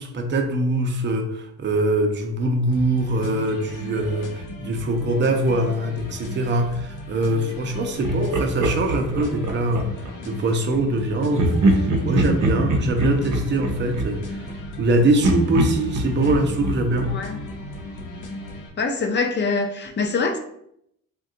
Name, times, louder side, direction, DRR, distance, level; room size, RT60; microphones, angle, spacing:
voice 1, 0.0-9.9 10.3-14.4 14.8-17.1, right 1 dB, 40° right, 4 dB, 0.5 m, -23 dB
sound 1, 2.7-18.7, left 1 dB, 80° left, 0.7 m, -36 dB
Laughter, 8.0-10.2 11.3-14.8 15.2-18.0, right 1 dB, 75° right, 0.6 m, -24 dB
voice 2, 17.1-17.4 18.8-20.4, left 4 dB, 35° left, 6 dB, 0.5 m, -24 dB
2.6 x 2.2 x 3.7 m, 0.74 s
cardioid pair, 90°, 30 cm